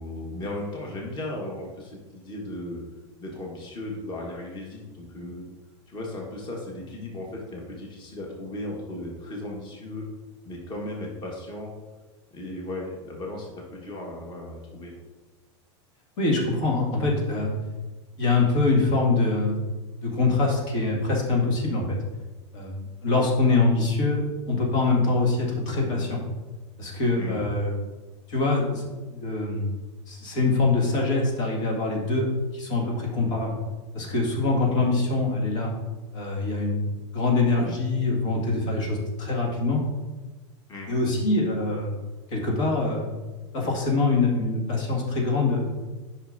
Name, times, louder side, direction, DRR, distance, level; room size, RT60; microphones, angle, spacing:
voice 1, 0.0-2.8 3.2-5.5 5.9-10.1 10.4-11.7 12.3-14.9 27.2-27.4 40.7-40.9, left 1 dB, 30° left, -1 dB, 1.4 m, -36 dB
voice 2, 16.2-17.5 18.2-19.6 20.0-22.0 22.5-26.2 26.8-27.9 28.3-29.8 30.1-33.6 33.9-35.7 36.1-39.8 40.9-41.9 42.3-43.1 43.5-45.7, left 3 dB, 75° left, -2 dB, 2.0 m, -24 dB
8.9 x 5.6 x 2.6 m, 1.2 s
supercardioid pair, 120°, 15 cm